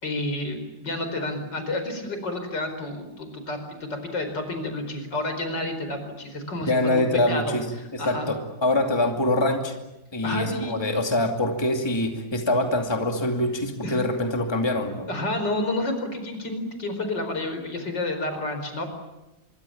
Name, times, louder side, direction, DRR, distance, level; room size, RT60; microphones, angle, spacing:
voice 1, 0.0-7.6 8.0-8.3 10.2-10.7 13.8-14.0 15.1-18.9, left 2 dB, 75° left, 7 dB, 5.3 m, -30 dB
voice 2, 6.7-7.6 7.9-9.8 10.1-15.1, left 1 dB, 15° left, 4 dB, 2.5 m, -24 dB
25.5 x 23.5 x 8.7 m, 0.98 s
omnidirectional pair, 1.9 m